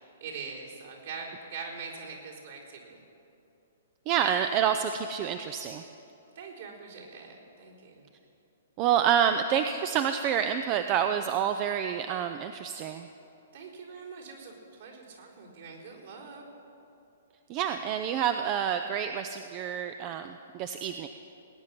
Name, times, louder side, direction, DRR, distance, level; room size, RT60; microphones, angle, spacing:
voice 1, 0.2-3.0 6.4-8.1 13.5-16.4, right 5 dB, 60° right, -3 dB, 4.1 m, -43 dB
voice 2, 4.1-5.8 8.8-13.1 17.5-21.1, right 8 dB, 35° right, 8 dB, 0.5 m, -28 dB
19.5 x 9.6 x 6.0 m, 2.8 s
figure-of-eight pair, 120°, 0 cm